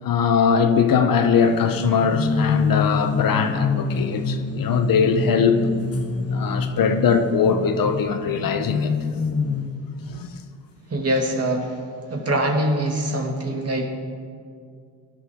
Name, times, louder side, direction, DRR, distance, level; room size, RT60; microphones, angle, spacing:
voice 1, 0.0-5.6 6.3-8.9 10.1-10.3, left 6 dB, 55° left, 1.0 m, -21 dB
sound 1, 1.3-9.7, left 4 dB, 35° left, 1.2 m, -26 dB
voice 2, 10.9-11.8 12.1-13.9, right 1 dB, 35° right, 2.6 m, -23 dB
17.5 x 11.0 x 3.8 m
hypercardioid pair, 50°, 40 cm